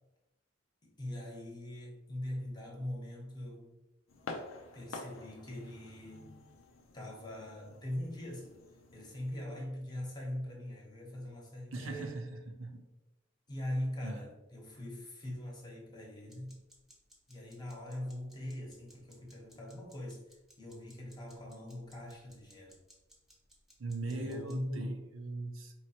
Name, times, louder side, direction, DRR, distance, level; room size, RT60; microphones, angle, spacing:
voice 1, 0.8-3.7 4.7-6.4 6.9-8.6 8.9-12.2 13.5-16.6 17.3-20.2 20.6-22.8 24.0-25.0, left 1 dB, 20° left, -2 dB, 0.9 m, -41 dB
sound 1, 4.1-9.4, left 3 dB, 85° left, 0.6 m, -49 dB
voice 2, 11.7-12.9 14.0-14.2 23.8-25.7, right 2 dB, 80° right, 5 dB, 0.6 m, -40 dB
sound 2, 16.3-24.6, equal, ahead, 0.8 m, -63 dB
4.4 x 3.1 x 2.8 m, 1.0 s
head